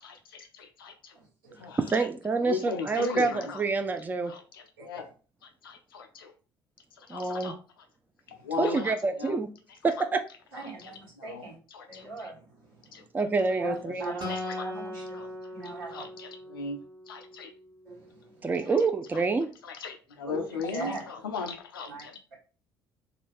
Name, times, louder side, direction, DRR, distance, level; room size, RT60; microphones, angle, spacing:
voice 1, 0.0-1.1 1.6-2.1 2.4-3.6 4.3-5.1 5.4-6.3 7.0-7.6 8.3-9.4 10.5-11.5 11.7-12.3 12.9-13.0 13.5-14.7 15.1-15.3 15.9-16.8 17.1-17.5 18.7-18.8 19.1-19.2 19.6-22.2, left 5 dB, 80° left, 0.4 m, -38 dB
voice 2, 1.1-1.8 4.9-5.0 8.3-8.5 10.5-11.6 11.9-13.0 13.6-14.3 14.6-15.2 15.5-16.1 17.8-18.7 20.2-21.0 21.9-22.0, right 3 dB, 75° right, 1.3 m, -41 dB
voice 3, 1.9-4.3 7.1-7.5 8.6-9.5 9.8-10.2 13.1-14.0 18.4-19.5, right 4 dB, 15° right, 0.4 m, -27 dB
Acoustic guitar, 14.2-17.6, left 1 dB, 35° right, 1.0 m, -39 dB
2.4 x 2.2 x 3.3 m
figure-of-eight pair, 55°, 12 cm